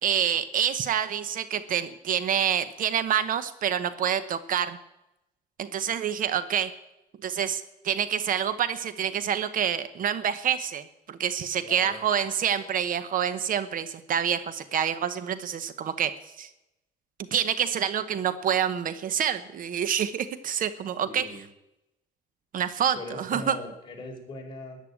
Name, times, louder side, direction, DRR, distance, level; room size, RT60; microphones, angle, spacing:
voice 1, 0.0-4.8 5.6-6.7 7.2-16.1 16.4-16.5 17.3-21.2 22.5-23.6, right 9 dB, 55° right, 13 dB, 0.9 m, -27 dB
voice 2, 11.6-12.0 21.0-21.4 22.9-24.8, left 1 dB, 30° left, 0 dB, 4.8 m, -40 dB
13.5 x 10.5 x 8.5 m, 0.91 s
cardioid pair, 110°, 17 cm